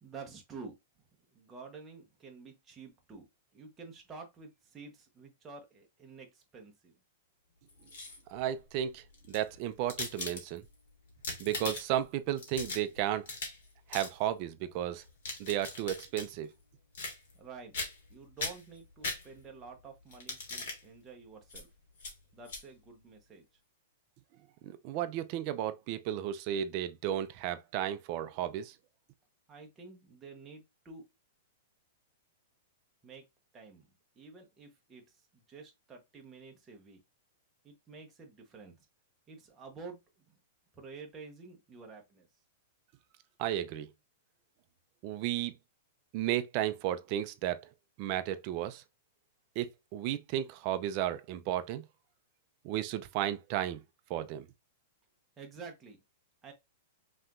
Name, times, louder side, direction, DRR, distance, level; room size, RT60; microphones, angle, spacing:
voice 1, 0.0-0.7 1.3-3.3 3.5-7.0 17.3-17.8 18.1-21.7 22.3-23.5 29.5-31.0 33.0-33.2 33.5-37.0 37.6-38.8 39.3-40.4 40.7-42.3 55.4-56.0 56.4-56.5, right 4 dB, 10° right, 0.8 m, -50 dB
sound 1, 7.7-8.4 9.1-10.7 11.1-12.0 12.4-13.6 13.9-14.1 15.0-16.3 16.9-17.5 17.7-18.1 18.4-19.6 20.1-20.8 21.5-21.6 22.0-22.1 22.5-22.6, left 3 dB, 55° left, 1.5 m, -40 dB
voice 2, 8.3-10.6 11.4-13.3 13.9-15.0 15.4-16.5 24.6-28.7 43.4-43.9 45.0-45.5 46.1-47.6 48.0-48.8 49.6-51.8 52.6-53.8 54.1-54.5, right 12 dB, 30° right, 0.4 m, -33 dB
5.6 x 2.9 x 2.4 m
supercardioid pair, 180°, 0 cm